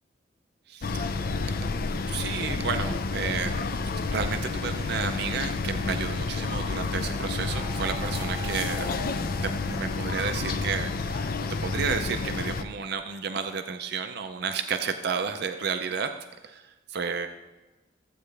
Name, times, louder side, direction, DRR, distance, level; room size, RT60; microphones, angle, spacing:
voice 1, 0.7-1.4 1.9-9.1 9.4-16.1 16.4-17.3, right 5 dB, 60° right, 7 dB, 0.5 m, -32 dB
sound 1, 0.8-12.6, left 3 dB, 50° left, 0.5 m, -30 dB
sound 2, 7.4-10.7, right 4 dB, 10° right, 3.5 m, -44 dB
14.5 x 8.3 x 3.3 m, 1.1 s
head